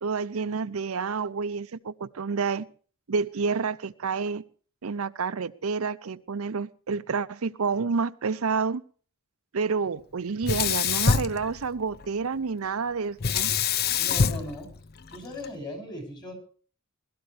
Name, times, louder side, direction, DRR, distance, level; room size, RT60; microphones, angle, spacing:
voice 1, 0.0-2.7 3.1-4.4 4.8-8.8 9.5-13.5, right 5 dB, 75° right, 12 dB, 0.6 m, -29 dB
Sink (filling or washing), 10.4-12.1 13.2-15.5, left 6 dB, 45° left, 0.6 m, -26 dB
voice 2, 14.0-14.7 15.1-16.3, left 2 dB, 20° left, 4 dB, 6.2 m, -38 dB
21.0 x 13.5 x 3.3 m, 0.42 s
head